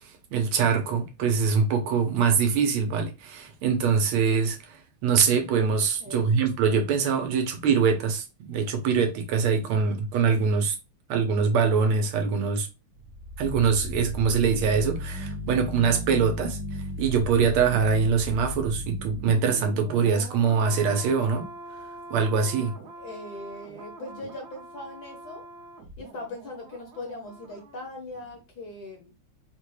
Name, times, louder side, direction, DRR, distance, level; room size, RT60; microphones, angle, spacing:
voice 1, 0.0-10.8 11.1-12.7 13.4-16.6 17.0-21.5 22.1-22.7, right 6 dB, 85° right, 1.7 m, -23 dB
voice 2, 6.0-6.4 23.0-25.5 26.0-29.1, left 2 dB, 65° left, 1.0 m, -40 dB
sound 1, 12.9-27.9 28.2-28.3, right 1 dB, 60° right, 1.3 m, -38 dB
4.2 x 2.2 x 3.1 m
omnidirectional pair, 2.3 m